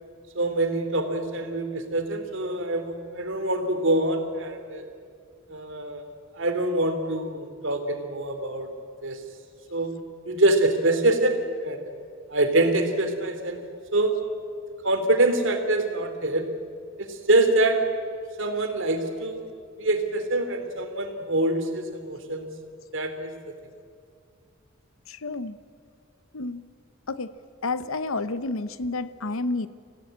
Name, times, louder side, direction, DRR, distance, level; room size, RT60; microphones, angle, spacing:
voice 1, 0.3-4.9 5.5-6.0 6.4-8.7 9.0-9.2 9.7-9.9 10.3-11.8 12.3-13.6 13.9-14.1 14.8-16.5 17.0-17.8 18.4-19.5 19.8-22.5 22.9-23.3, right 2 dB, 65° right, 7 dB, 2.8 m, -25 dB
voice 2, 25.1-25.6 26.3-26.6 27.1-27.3 27.6-29.7, left 3 dB, 75° left, 14 dB, 0.9 m, -30 dB
26.0 x 16.5 x 8.8 m, 2.2 s
head